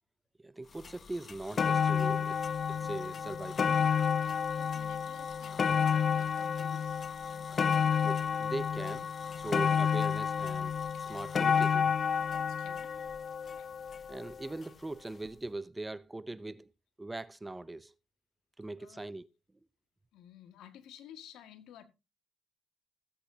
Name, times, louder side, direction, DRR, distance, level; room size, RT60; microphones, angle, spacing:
voice 1, 0.4-3.7 8.0-11.9 14.1-16.7 17.0-17.9 18.6-19.3, right 2 dB, 15° right, 0.6 m, -41 dB
sound 1, 0.8-0.9 1.3-14.5 15.2-15.3, left 7 dB, 40° left, 0.5 m, -30 dB
voice 2, 4.2-7.0 10.9-11.2 12.3-13.1 13.4-13.7 18.8-19.1 20.1-21.8, left 10 dB, 70° left, 1.8 m, -54 dB
16.5 x 8.5 x 2.7 m
supercardioid pair, 75°, 0 cm